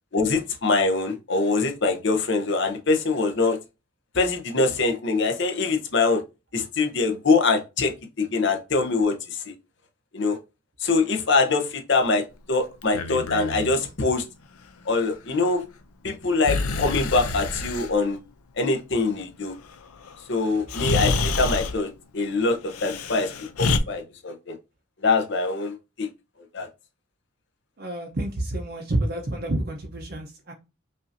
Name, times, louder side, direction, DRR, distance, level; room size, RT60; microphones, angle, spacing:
voice 1, 0.1-3.6 4.1-6.2 6.5-9.5 10.1-10.4 10.8-14.2 14.9-15.6 16.0-18.2 18.6-19.5 20.3-23.3 23.6-24.5 25.0-26.1 26.5-26.7, left 3 dB, 55° left, 0.8 m, -24 dB
Breathing, 12.8-13.7 16.4-17.9 20.1-20.2 20.7-21.8 22.7-23.8, left 3 dB, 90° left, 0.5 m, -27 dB
voice 2, 27.8-30.5, right 1 dB, 45° right, 0.7 m, -29 dB
5.4 x 2.6 x 2.6 m
head